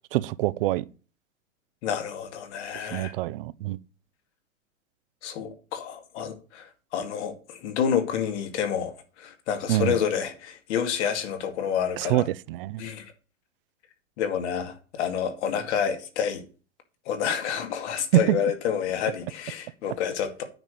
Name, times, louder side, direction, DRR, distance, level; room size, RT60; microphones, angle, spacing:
voice 1, 0.1-0.8 2.9-3.8 9.7-10.0 12.0-12.9 18.3-18.4, right 16 dB, 45° right, 0.6 m, -26 dB
voice 2, 1.8-3.1 5.2-12.3 12.8-13.1 14.2-16.4 17.1-20.4, left 8 dB, 55° left, 2.2 m, -29 dB
9.0 x 5.1 x 6.3 m
hypercardioid pair, 125°, 41 cm